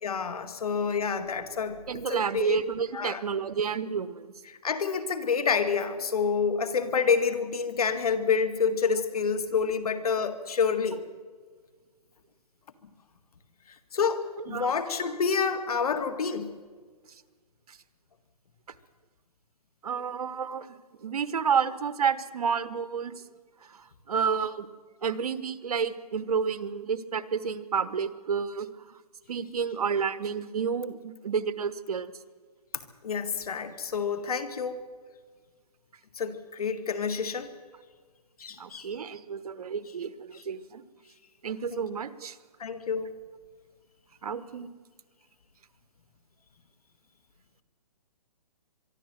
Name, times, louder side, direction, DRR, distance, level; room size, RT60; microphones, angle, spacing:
voice 1, 0.0-2.6 2.9-3.2 4.5-11.0 13.9-16.5 33.0-34.8 36.1-37.5 38.4-38.9 41.7-41.8 42.6-43.1, left 6 dB, 65° left, 10 dB, 2.0 m, -28 dB
voice 2, 1.9-4.3 14.5-14.7 17.7-17.8 19.8-23.2 23.6-24.7 25.0-29.0 29.3-32.1 38.6-40.8 41.4-42.4 44.2-44.7, right 6 dB, 70° right, 15 dB, 1.2 m, -30 dB
23.5 x 12.0 x 9.1 m, 1.5 s
hypercardioid pair, 160°, 20 cm